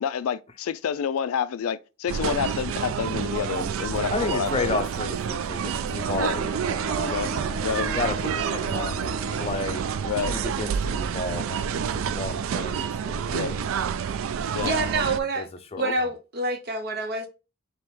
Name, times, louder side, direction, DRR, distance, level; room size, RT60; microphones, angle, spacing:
voice 1, 0.0-4.8 6.2-6.3 7.0-7.3 7.6-7.9 10.0-10.4 13.3-13.5 14.5-14.7 15.8-15.9, left 7 dB, 85° left, 0.3 m, -29 dB
sound 1, 2.1-15.2, right 7 dB, 70° right, 0.3 m, -28 dB
voice 2, 4.1-7.4 7.8-9.8 10.2-13.7 14.6-14.9 15.4-15.5 15.7-16.1, left 2 dB, 30° left, 0.5 m, -32 dB
Wind instrument woodwind instrument, 6.0-10.4, left 3 dB, 10° left, 1.0 m, -39 dB
voice 3, 14.6-15.5 15.8-17.3, right 3 dB, 50° right, 0.8 m, -27 dB
3.3 x 3.0 x 4.5 m
head